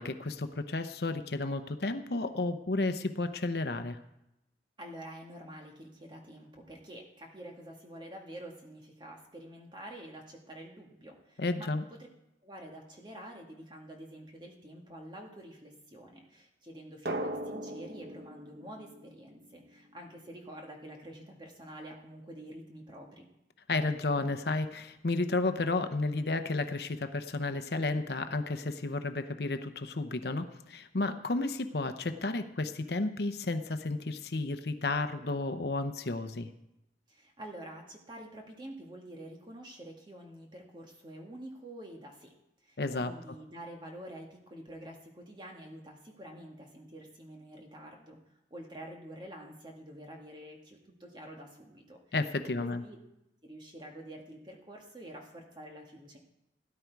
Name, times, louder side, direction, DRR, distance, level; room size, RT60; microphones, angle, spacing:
voice 1, 0.0-4.0 11.4-11.8 23.7-36.5 42.8-43.1 52.1-52.8, left 2 dB, 65° left, 9 dB, 0.8 m, -32 dB
voice 2, 4.8-11.7 12.4-23.3 37.1-42.3 42.6-48.2 48.5-52.0 52.6-53.0 53.4-56.2, right 1 dB, 25° right, 1 dB, 1.9 m, -47 dB
Drum, 17.1-19.8, right 1 dB, 60° right, 0.9 m, -39 dB
17.0 x 10.5 x 4.7 m, 0.88 s
head